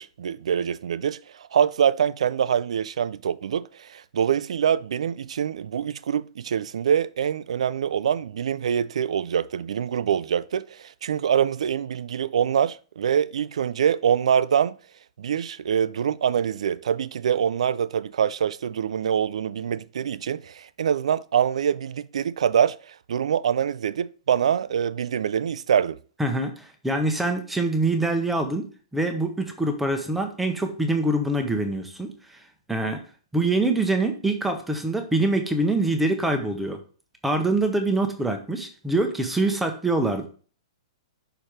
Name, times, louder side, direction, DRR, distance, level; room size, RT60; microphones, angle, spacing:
voice 1, 0.0-14.7 15.2-26.0, right 8 dB, 75° right, 0.4 m, -24 dB
voice 2, 26.2-28.7 28.9-32.1 32.7-33.0 33.3-36.8 37.2-40.3, right 2 dB, 5° right, 0.7 m, -24 dB
5.7 x 4.6 x 5.0 m
hypercardioid pair, 170°, 3 cm